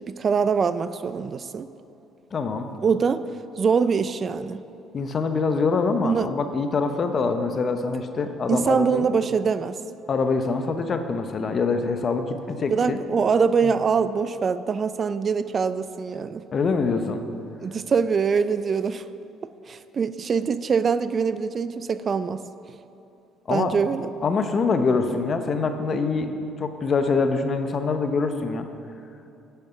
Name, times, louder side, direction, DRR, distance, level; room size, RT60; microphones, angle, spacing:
voice 1, 0.0-1.7 2.8-3.3 3.6-4.6 6.0-6.3 8.5-9.8 12.7-16.4 17.6-19.0 19.7-22.4 23.5-24.1, right 5 dB, 45° right, 13 dB, 0.4 m, -23 dB
voice 2, 2.3-2.7 4.9-9.1 10.1-13.0 13.6-13.7 16.5-17.2 23.5-23.7 24.2-26.3 26.6-28.7, left 4 dB, 45° left, 7 dB, 0.9 m, -24 dB
10.5 x 7.0 x 5.9 m, 2.8 s
supercardioid pair, 65°, 0 cm